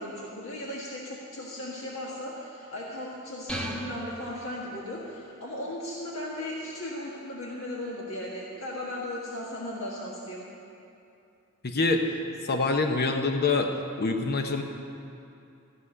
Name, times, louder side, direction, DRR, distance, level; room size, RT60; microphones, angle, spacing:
voice 1, 0.0-10.4, left 1 dB, 65° left, -4 dB, 1.7 m, -37 dB
sound 1, 3.5-5.1, equal, 5° left, 1.2 m, -37 dB
voice 2, 11.6-12.1 12.4-13.7 14.0-14.6, left 3 dB, 50° left, 4 dB, 0.9 m, -25 dB
15.5 x 6.3 x 9.9 m, 2.6 s
head